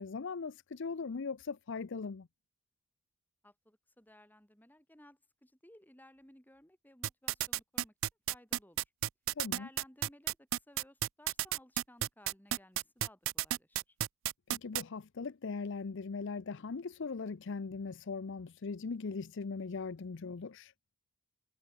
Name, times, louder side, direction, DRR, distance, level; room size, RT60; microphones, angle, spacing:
voice 1, 0.0-2.3 9.4-9.7 14.5-20.7, left 4 dB, 60° left, 0.6 m, -39 dB
voice 2, 3.4-7.9 8.3-8.8 9.5-14.0, left 1 dB, 10° left, 4.8 m, -59 dB
sound 1, 7.0-14.8, right 14 dB, 65° right, 0.4 m, -32 dB
head